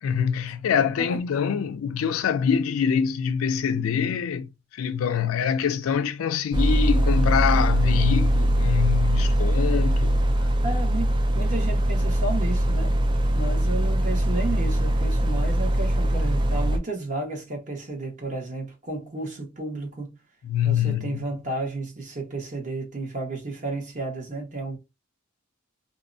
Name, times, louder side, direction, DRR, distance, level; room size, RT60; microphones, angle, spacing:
voice 1, 0.0-10.2 20.4-21.2, left 7 dB, 90° left, 0.3 m, -25 dB
sound 1, 6.5-16.8, right 1 dB, 25° right, 0.3 m, -22 dB
voice 2, 10.6-12.9 13.3-20.2 20.6-24.8, right 2 dB, 40° right, 1.0 m, -32 dB
2.7 x 2.1 x 2.5 m
head